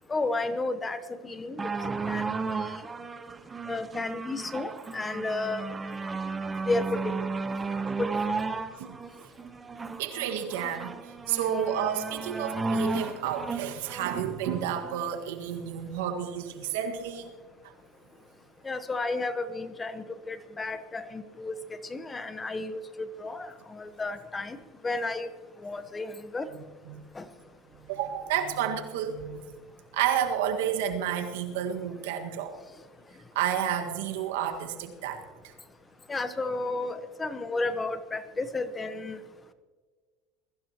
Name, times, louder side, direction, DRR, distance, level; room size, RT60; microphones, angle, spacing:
voice 1, 0.1-1.7 2.1-2.7 3.7-5.7 6.7-7.2 8.0-8.1 18.6-21.5 21.8-24.6 24.8-25.3 25.6-26.5 27.1-27.3 36.1-39.2, left 3 dB, 20° left, 12 dB, 1.0 m, -32 dB
sound 1, 1.6-15.1 15.9-16.0, right 4 dB, 20° right, 0.9 m, -34 dB
voice 2, 10.0-17.3 17.6-17.7 26.9-27.0 27.9-29.4 29.9-32.5 33.3-35.5, right 9 dB, 85° right, 5 dB, 1.7 m, -31 dB
21.5 x 15.0 x 2.9 m, 1.4 s
supercardioid pair, 110°, 0 cm